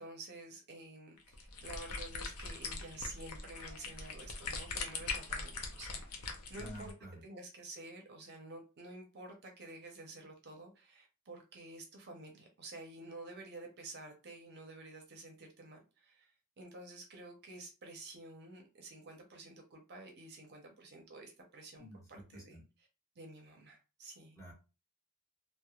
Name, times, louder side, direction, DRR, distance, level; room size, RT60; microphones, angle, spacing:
voice 1, 0.0-6.9 7.2-22.9 23.2-24.4, right 2 dB, 50° right, 0.6 m, -50 dB
sound 1, 1.2-6.9, left 4 dB, 85° left, 0.6 m, -42 dB
voice 2, 6.6-7.1 21.8-22.0 22.5-22.6 24.4-24.5, equal, 15° left, 1.0 m, -48 dB
2.9 x 2.1 x 2.3 m
head